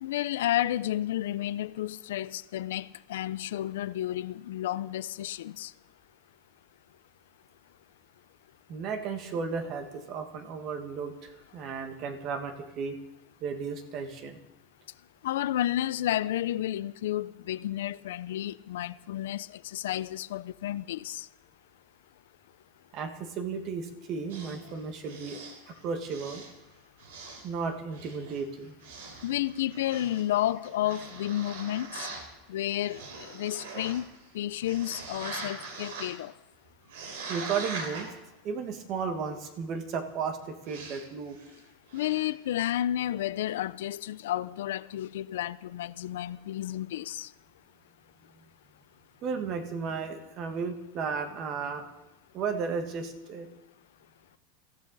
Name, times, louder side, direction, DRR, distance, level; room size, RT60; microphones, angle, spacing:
voice 1, 0.0-5.7 15.2-21.3 24.7-24.8 29.2-32.1 32.5-34.1 34.3-36.3 41.9-47.3, left 13 dB, 85° left, 0.5 m, -31 dB
voice 2, 8.7-13.0 13.4-14.4 22.9-25.4 25.8-26.4 27.4-28.7 37.3-38.1 38.4-41.4 49.2-51.9 52.3-53.5, right 5 dB, 35° right, 1.5 m, -34 dB
sound 1, 24.3-26.6 27.0-27.6 27.9-32.3 32.8-34.3 34.6-36.2 36.8-38.1 40.7-41.1 41.3-41.6 41.9-42.3, right 4 dB, 80° right, 4.1 m, -42 dB
23.5 x 15.0 x 4.0 m
supercardioid pair, 170°, 0 cm